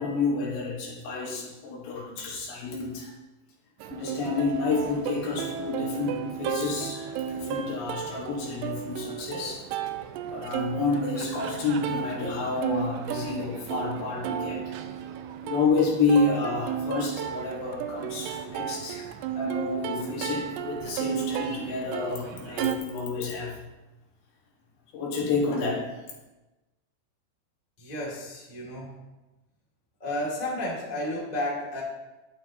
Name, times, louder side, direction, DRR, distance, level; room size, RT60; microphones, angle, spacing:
voice 1, 0.0-3.1 3.9-9.6 10.3-14.8 15.4-23.6 24.9-26.0, left 4 dB, 70° left, -3 dB, 3.7 m, -29 dB
Plucked string instrument, 3.8-22.8, right 8 dB, 85° right, 2.4 m, -33 dB
voice 2, 27.8-28.9 30.0-31.8, left 1 dB, 20° left, -5 dB, 1.2 m, -32 dB
11.5 x 9.3 x 3.0 m, 1.1 s
omnidirectional pair, 5.5 m